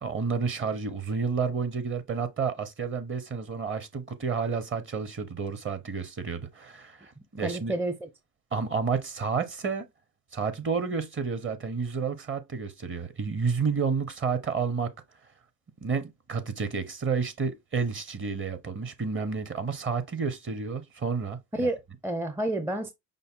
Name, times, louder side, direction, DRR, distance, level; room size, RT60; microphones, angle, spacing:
voice 1, 0.0-7.7 8.5-9.8 10.3-14.9 15.8-21.7, right 5 dB, 30° right, 1.0 m, -30 dB
voice 2, 7.4-8.1 21.5-22.9, right 1 dB, 5° right, 0.6 m, -30 dB
5.4 x 2.2 x 3.7 m
hypercardioid pair, 75°, 39 cm